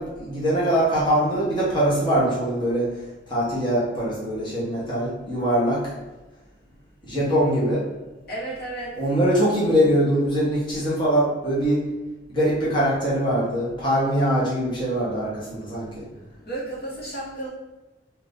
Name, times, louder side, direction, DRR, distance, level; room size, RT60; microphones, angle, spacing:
voice 1, 0.0-2.9 3.3-5.8 7.0-7.8 9.0-11.8 12.3-16.0, equal, 25° left, -8 dB, 1.0 m, -22 dB
voice 2, 8.3-9.0 16.2-17.5, right 2 dB, 55° left, -7 dB, 1.5 m, -33 dB
2.8 x 2.5 x 3.4 m, 1.1 s
head